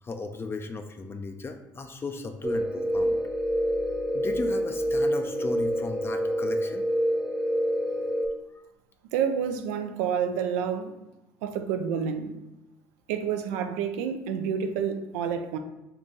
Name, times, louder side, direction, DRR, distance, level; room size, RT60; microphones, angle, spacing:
voice 1, 0.0-3.2 4.1-6.8, left 3 dB, 30° left, 6 dB, 0.4 m, -36 dB
sound 1, 2.4-8.3, equal, 5° right, 0.7 m, -27 dB
voice 2, 9.1-10.9 11.4-12.3 13.1-15.6, right 7 dB, 90° right, 8 dB, 0.4 m, -29 dB
3.9 x 2.3 x 3.8 m, 1.0 s
supercardioid pair, 70°, 8 cm